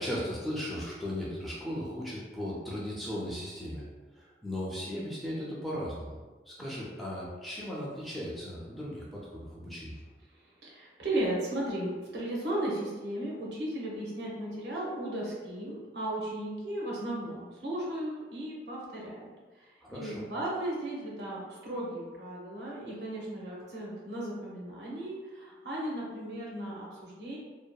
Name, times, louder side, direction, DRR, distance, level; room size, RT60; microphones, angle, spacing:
voice 1, 0.0-3.9 4.1-6.1 6.5-10.0 19.8-20.3, equal, ahead, -6 dB, 0.4 m, -37 dB
voice 2, 10.6-19.3 19.6-27.4, right 1 dB, 70° right, -4 dB, 0.7 m, -35 dB
2.7 x 2.2 x 2.2 m, 1.3 s
head